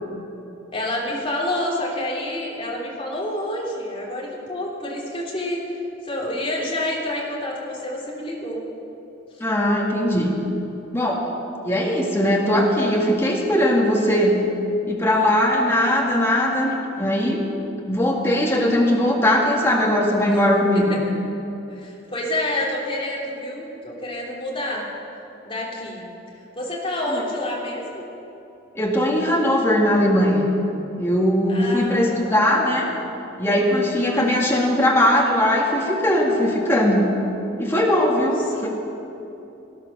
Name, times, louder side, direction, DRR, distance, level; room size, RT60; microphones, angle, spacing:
voice 1, 0.7-5.6 6.0-8.6 20.3-20.4 20.9-21.0 21.7-24.9 25.4-26.0 26.5-28.0 31.5-32.5 34.1-34.4 38.5-38.7, left 1 dB, 30° left, -4 dB, 3.2 m, -28 dB
voice 2, 9.4-10.3 10.9-11.3 11.6-14.4 14.9-17.5 17.9-21.0 27.1-27.2 28.7-30.5 31.0-32.9 33.4-37.1 37.6-38.7, left 1 dB, 15° left, -2 dB, 2.0 m, -20 dB
19.0 x 10.5 x 6.6 m, 2.9 s
head